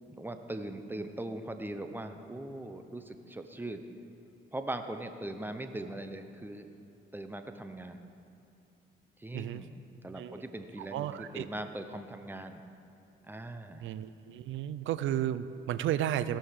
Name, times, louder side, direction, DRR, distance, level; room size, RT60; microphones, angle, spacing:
voice 1, 0.1-3.8 4.5-6.7 7.1-8.0 9.2-12.6 13.2-13.9, right 1 dB, 10° right, 7 dB, 0.9 m, -40 dB
voice 2, 9.3-9.7 10.2-10.4 10.9-11.5 13.8-16.4, right 11 dB, 75° right, 14 dB, 0.5 m, -33 dB
17.0 x 5.7 x 6.4 m, 2.7 s
cardioid pair, 90°, 20 cm